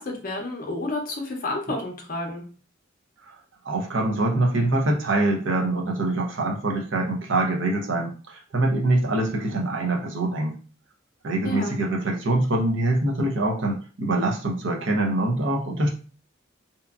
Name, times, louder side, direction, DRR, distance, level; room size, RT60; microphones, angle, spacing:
voice 1, 0.0-2.4 11.4-11.8, left 2 dB, 40° left, 1 dB, 0.6 m, -30 dB
voice 2, 3.6-10.5 11.2-15.9, right 2 dB, 60° right, 1 dB, 0.6 m, -24 dB
2.8 x 2.4 x 2.3 m, 0.37 s
head